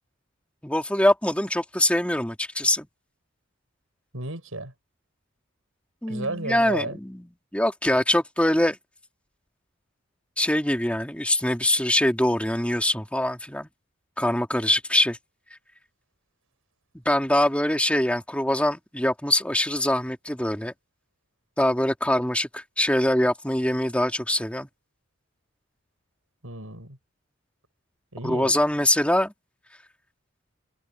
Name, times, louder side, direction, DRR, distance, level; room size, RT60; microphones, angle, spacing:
voice 1, 0.6-2.9 6.0-7.2 7.5-8.8 10.4-13.7 14.2-15.2 17.1-20.7 21.6-24.7 28.2-29.3, left 1 dB, 5° left, 2.3 m, -23 dB
voice 2, 4.1-4.7 6.1-7.0 26.4-27.0 28.1-28.6, right 2 dB, 80° right, 6.3 m, -33 dB
head